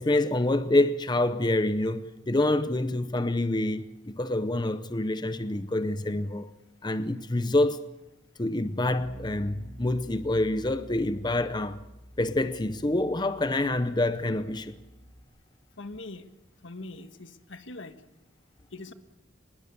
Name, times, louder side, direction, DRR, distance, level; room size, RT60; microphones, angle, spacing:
voice 1, 0.0-6.5 6.8-7.8 8.4-11.8 12.2-14.8, left 2 dB, 20° left, 0.7 m, -27 dB
Bass guitar, 9.0-15.2, equal, 20° right, 4.8 m, -48 dB
voice 2, 15.8-16.3 16.6-18.0 18.7-18.9, left 2 dB, 75° left, 1.6 m, -42 dB
24.5 x 21.0 x 7.0 m
head